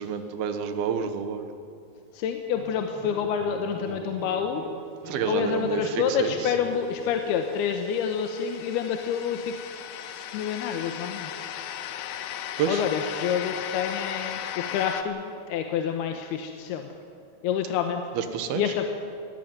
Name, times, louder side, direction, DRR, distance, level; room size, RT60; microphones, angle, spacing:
voice 1, 0.0-1.5 5.0-5.8 6.2-6.3 12.6-12.8 18.2-18.6, right 7 dB, 75° right, 8 dB, 3.1 m, -28 dB
voice 2, 2.1-4.6 5.2-9.5 10.3-11.3 12.7-16.9 17.4-18.1 18.5-18.9, left 7 dB, 90° left, 5 dB, 3.0 m, -28 dB
sound 1, 2.5-7.6, right 2 dB, 45° right, 8.8 m, -41 dB
sound 2, 6.6-15.0, left 10 dB, 70° left, 2.0 m, -37 dB
21.5 x 14.0 x 9.3 m, 2.4 s
omnidirectional pair, 4.5 m